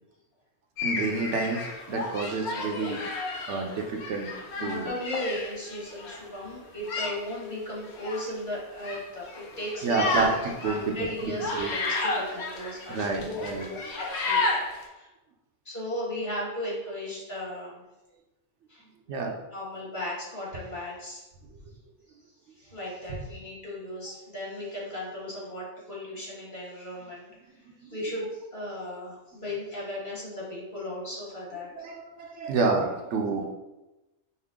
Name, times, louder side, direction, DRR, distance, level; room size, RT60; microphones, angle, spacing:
sound 1, 0.8-6.2 6.9-7.4 7.9-8.3 8.8-9.0 9.3-14.8, left 3 dB, 65° left, 0.9 m, -32 dB
voice 1, 0.8-3.0 3.5-4.3 4.6-4.9 9.8-10.9 11.2-11.7 12.9-13.7 19.1-19.4 27.8-28.0 31.7-33.5, right 4 dB, 75° right, 2 dB, 0.9 m, -29 dB
voice 2, 4.5-10.3 10.6-14.4 14.7-15.1 15.6-17.8 18.7-18.8 19.5-21.3 22.6-27.3 27.8-31.9, left 1 dB, 40° left, -6 dB, 1.6 m, -36 dB
5.5 x 2.1 x 3.5 m, 1.0 s
omnidirectional pair, 1.2 m